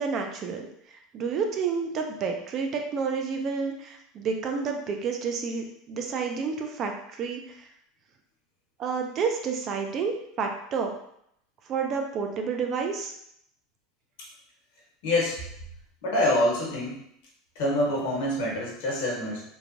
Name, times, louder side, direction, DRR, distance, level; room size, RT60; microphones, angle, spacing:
voice 1, 0.0-7.7 8.8-10.9 11.7-13.1, right 5 dB, 30° right, 3 dB, 0.3 m, -30 dB
voice 2, 15.0-15.4 16.0-17.0 17.5-19.4, left 1 dB, 75° left, -3 dB, 1.0 m, -26 dB
3.1 x 2.1 x 2.5 m, 0.72 s
supercardioid pair, 160°, 0 cm